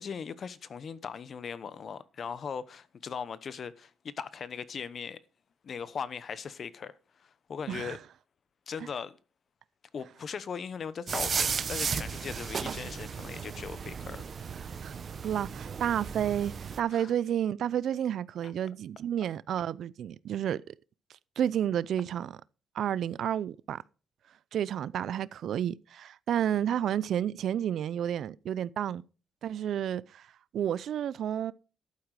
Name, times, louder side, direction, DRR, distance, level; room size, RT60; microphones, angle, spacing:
voice 1, 0.0-5.2 5.6-6.9 7.2-8.0 8.7-9.1 9.9-14.2 16.9-17.1, left 6 dB, 50° left, 0.9 m, -39 dB
sound 1, 11.1-16.8, right 6 dB, 45° right, 0.9 m, -35 dB
voice 2, 15.2-20.7 21.4-22.4 22.7-23.8 24.5-29.0 29.4-30.3 30.5-31.5, right 10 dB, 70° right, 0.5 m, -31 dB
11.5 x 8.9 x 4.8 m
cardioid pair, 90°, 0 cm